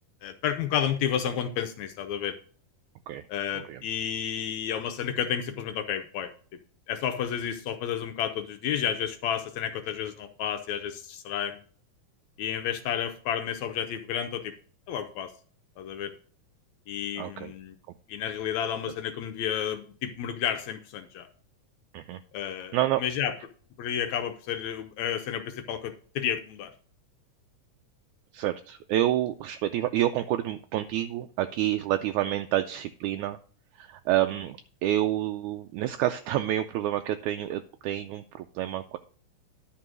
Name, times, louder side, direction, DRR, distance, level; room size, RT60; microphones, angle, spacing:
voice 1, 0.2-2.4 3.3-6.3 6.9-11.6 12.4-14.5 14.9-15.3 15.8-16.1 16.9-17.8 18.1-21.3 22.3-23.3 23.8-26.7, left 9 dB, 75° left, 7 dB, 1.7 m, -31 dB
voice 2, 17.2-17.5 21.9-22.2 22.7-23.0 28.3-33.4 33.8-39.0, right 13 dB, 80° right, 7 dB, 1.7 m, -28 dB
11.0 x 3.8 x 6.1 m, 0.43 s
omnidirectional pair, 3.9 m